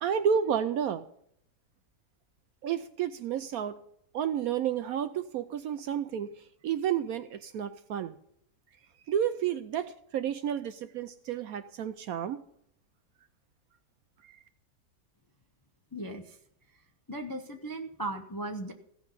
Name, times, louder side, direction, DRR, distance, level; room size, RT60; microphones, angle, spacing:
voice 1, 0.0-1.0 2.6-3.8 4.1-6.3 6.6-8.2 9.1-12.4 14.2-14.4, right 8 dB, 70° right, 11 dB, 0.9 m, -31 dB
voice 2, 15.9-16.4 17.1-18.7, right 1 dB, 25° left, 4 dB, 0.4 m, -37 dB
16.0 x 6.1 x 5.3 m, 0.70 s
omnidirectional pair, 1.8 m